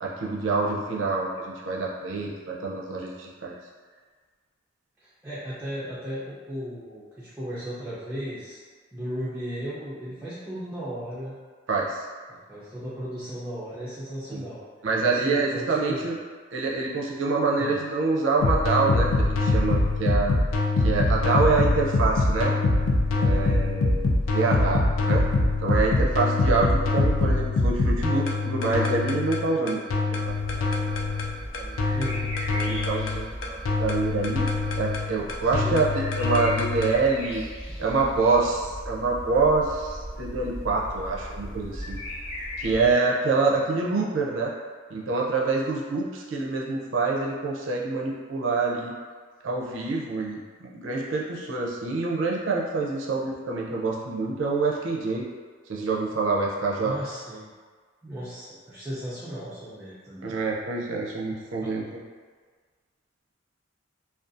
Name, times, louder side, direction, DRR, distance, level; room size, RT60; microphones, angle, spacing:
voice 1, 0.0-3.6 11.7-12.0 14.3-14.4 14.8-16.2 16.5-20.4 20.8-22.5 23.2-25.2 25.6-29.8 30.3-30.7 31.6-31.8 32.5-34.4 34.8-37.4 37.8-42.0 42.6-44.5 44.9-48.9 49.4-55.2 55.7-56.9 60.2-62.0, right 3 dB, 75° right, -3 dB, 0.5 m, -26 dB
voice 2, 5.0-8.6 8.9-11.4 12.3-14.6 15.1-16.1 17.6-17.8 24.4-24.7 31.9-32.3 35.6-35.8 56.8-57.5 58.0-60.3 61.6-61.7, equal, 10° right, -11 dB, 0.4 m, -35 dB
sound 1, 18.4-36.9, left 2 dB, 80° left, 0.4 m, -24 dB
sound 2, 30.2-42.9, equal, 35° left, 0.6 m, -37 dB
2.4 x 2.3 x 2.5 m, 1.5 s
head